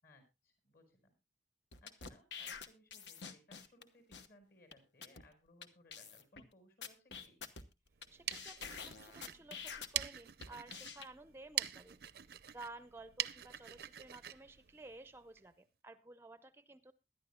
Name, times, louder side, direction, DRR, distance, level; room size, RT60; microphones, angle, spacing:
voice 1, 0.0-1.2 1.8-7.4, left 1 dB, 55° left, 7 dB, 5.2 m, -65 dB
sound 1, 1.7-3.8 4.1-4.3 4.7-4.8 5.0-5.2 5.6-5.7 5.9-6.4 6.8-8.1 8.3-10.0 10.4-11.1, left 6 dB, 85° left, 1.1 m, -47 dB
sound 2, 8.0-15.5, right 12 dB, 60° right, 0.5 m, -44 dB
voice 2, 8.1-12.0 12.5-16.9, right 2 dB, 15° right, 11 dB, 0.5 m, -54 dB
22.0 x 11.0 x 2.2 m, 0.25 s
head